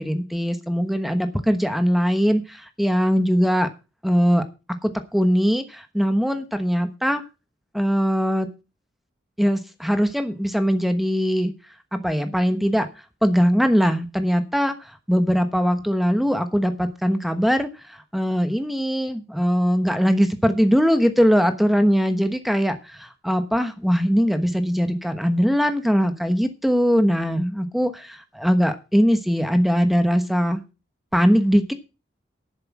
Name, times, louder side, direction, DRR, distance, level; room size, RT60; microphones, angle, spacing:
voice 1, 0.0-3.7 4.0-4.4 4.8-7.2 7.7-8.5 9.4-11.5 11.9-12.9 13.2-14.7 15.1-17.7 18.1-30.6 31.1-31.7, equal, ahead, 8 dB, 1.1 m, -21 dB
11.0 x 7.9 x 6.0 m, 0.30 s
head